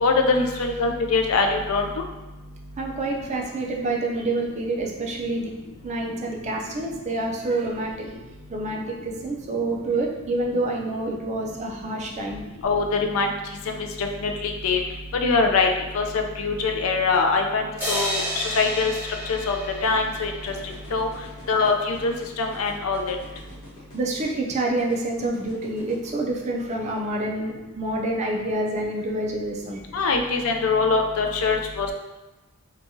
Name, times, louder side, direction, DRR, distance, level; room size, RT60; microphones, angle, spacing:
voice 1, 0.0-1.9 12.6-13.3 13.7-14.8 15.1-15.7 15.9-16.0 16.4-18.2 18.6-18.9 19.3-19.6 19.8-20.5 20.9-21.1 21.5-23.2 29.9-31.9, left 4 dB, 70° left, 3 dB, 0.4 m, -23 dB
voice 2, 2.8-5.5 5.8-8.1 8.5-12.4 23.9-29.8, right 2 dB, 30° right, 0 dB, 0.4 m, -27 dB
sound 1, 17.8-21.1, equal, 10° right, 1.3 m, -31 dB
sound 2, 19.8-26.1, left 1 dB, 90° left, 1.1 m, -46 dB
2.8 x 2.3 x 2.6 m, 1.1 s
head